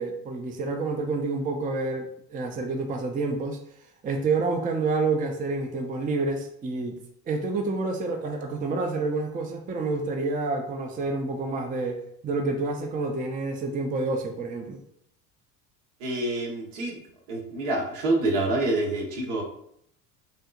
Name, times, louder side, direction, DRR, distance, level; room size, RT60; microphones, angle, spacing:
voice 1, 0.0-3.6 4.0-6.9 7.3-14.8, right 3 dB, 20° right, 3 dB, 0.5 m, -28 dB
voice 2, 16.0-17.0 17.3-19.4, right 2 dB, 70° right, 0 dB, 1.3 m, -27 dB
5.6 x 2.7 x 2.4 m, 0.71 s
hypercardioid pair, 70°, 47 cm